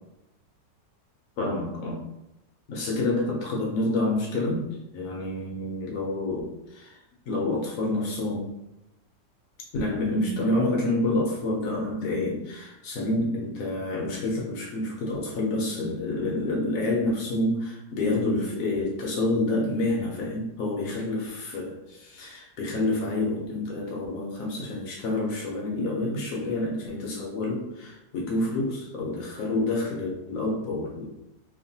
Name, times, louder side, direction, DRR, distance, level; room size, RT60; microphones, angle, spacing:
voice 1, 1.4-2.0 2.7-7.0 7.3-8.5 9.7-31.1, left 2 dB, 70° left, -2 dB, 0.8 m, -28 dB
3.0 x 2.1 x 2.7 m, 0.88 s
omnidirectional pair, 1.9 m